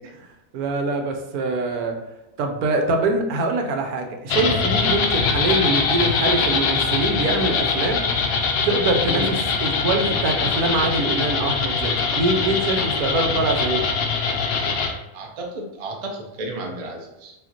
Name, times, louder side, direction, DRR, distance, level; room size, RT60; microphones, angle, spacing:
voice 1, 0.5-1.9 2.4-8.0 8.6-13.9, right 2 dB, 80° right, 4 dB, 1.1 m, -24 dB
sound 1, 4.3-14.9, left 5 dB, 80° left, 0.5 m, -23 dB
voice 2, 15.1-17.3, right 2 dB, 55° right, 0 dB, 0.3 m, -32 dB
4.9 x 2.8 x 2.8 m, 0.96 s
omnidirectional pair, 1.6 m